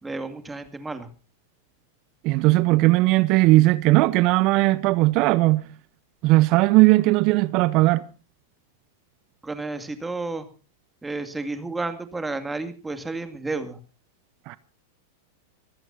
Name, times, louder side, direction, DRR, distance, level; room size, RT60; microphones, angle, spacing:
voice 1, 0.0-1.1 9.4-10.5 11.0-13.8, right 3 dB, 10° right, 2.3 m, -31 dB
voice 2, 2.2-5.7 6.2-8.0 14.5-14.6, right 20 dB, 45° right, 0.8 m, -18 dB
25.0 x 16.0 x 2.7 m
hypercardioid pair, 95°, 0 cm